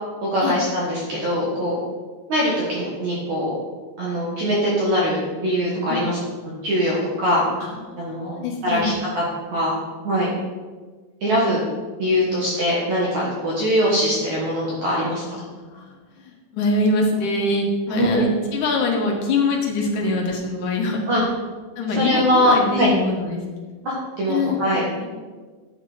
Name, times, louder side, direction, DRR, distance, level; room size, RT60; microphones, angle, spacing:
voice 1, 0.2-1.8 2.3-3.6 4.0-6.2 6.6-7.5 8.0-8.4 8.6-9.2 9.5-9.8 10.0-10.3 11.2-11.6 12.0-15.2 17.9-18.3 21.1-21.2 21.9-22.9 23.8-24.8, equal, 60° right, -5 dB, 2.1 m, -22 dB
voice 2, 7.6-8.9 11.7-11.8 15.4-21.0 21.8-23.4 23.7-23.8 24.3-24.6 25.0-25.1, left 2 dB, 65° left, -1 dB, 2.1 m, -24 dB
11.0 x 6.7 x 4.9 m, 1.4 s
omnidirectional pair, 5.2 m